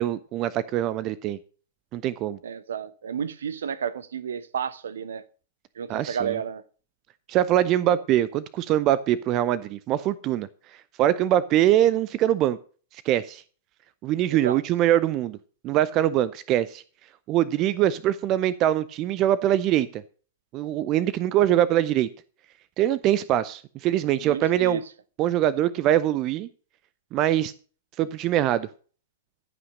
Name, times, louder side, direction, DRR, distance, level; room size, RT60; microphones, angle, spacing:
voice 1, 0.0-1.4 1.9-2.4 5.9-6.4 7.3-10.5 11.0-12.6 12.9-13.4 14.0-15.4 15.6-16.8 17.3-20.0 20.5-22.1 22.8-24.8 25.2-26.5 27.1-27.5 28.0-28.7, right 12 dB, 35° right, 0.5 m, -23 dB
voice 2, 2.4-5.2 5.8-6.6 7.9-8.0 14.3-14.6 24.2-24.8, right 7 dB, 65° right, 0.9 m, -31 dB
14.5 x 5.7 x 6.5 m
figure-of-eight pair, 100°, 0 cm